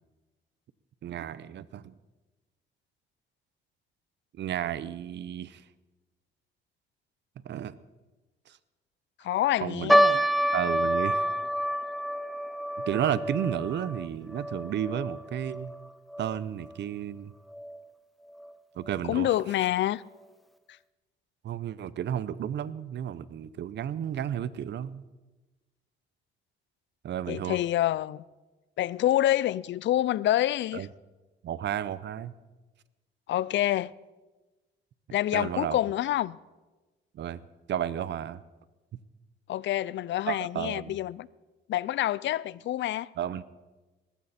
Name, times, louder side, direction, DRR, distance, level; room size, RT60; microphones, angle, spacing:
voice 1, 1.0-1.9 4.3-5.6 7.4-7.8 8.5-8.6 9.6-9.9 10.5-11.3 12.9-15.7 16.2-17.3 18.8-19.3 21.4-25.0 27.0-27.6 30.7-30.9 31.4-32.3 35.3-35.8 37.1-37.4 37.7-38.4 40.3-41.0 43.2-43.4, right 10 dB, 65° right, 0.7 m, -32 dB
voice 2, 9.2-10.2 19.1-20.0 27.3-28.2 28.8-30.9 33.3-33.9 35.1-36.4 39.5-41.3 41.7-43.1, left 13 dB, 65° left, 0.5 m, -27 dB
sound 1, 9.9-16.4 16.6-16.7 17.5-17.8 18.4-18.5 18.8-19.0, equal, ahead, 0.8 m, -28 dB
19.5 x 14.5 x 4.3 m
cardioid pair, 90°, 20 cm